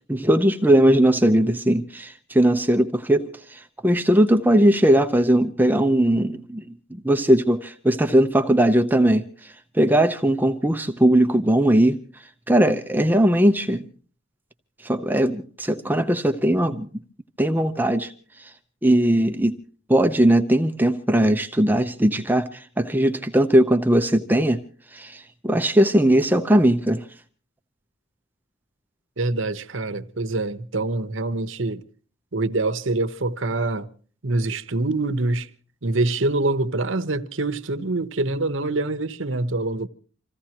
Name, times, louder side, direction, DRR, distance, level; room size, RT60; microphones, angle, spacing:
voice 1, 0.1-6.6 6.9-12.0 12.5-13.9 14.8-16.9 17.4-18.1 18.4-18.5 18.8-19.5 19.9-24.6 24.9-27.0, right 1 dB, 10° right, 0.7 m, -19 dB
voice 2, 29.2-31.8 32.3-33.9 34.2-35.5 35.8-39.9, right 2 dB, 70° right, 1.1 m, -25 dB
27.0 x 16.0 x 3.0 m
head